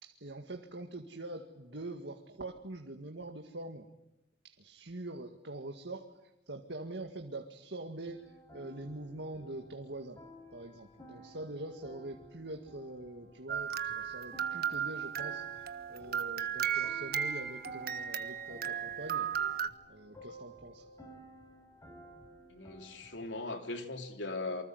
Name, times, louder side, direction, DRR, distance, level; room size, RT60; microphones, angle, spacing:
voice 1, 0.0-3.9 4.4-10.2 10.5-19.6 19.9-20.9, right 2 dB, 75° right, 2.0 m, -44 dB
sound 1, 8.1-23.3, equal, 20° left, 5.5 m, -55 dB
sound 2, 13.5-19.7, right 8 dB, 60° right, 1.4 m, -35 dB
voice 2, 22.5-24.6, left 2 dB, 90° left, 3.5 m, -39 dB
28.0 x 25.0 x 8.1 m
head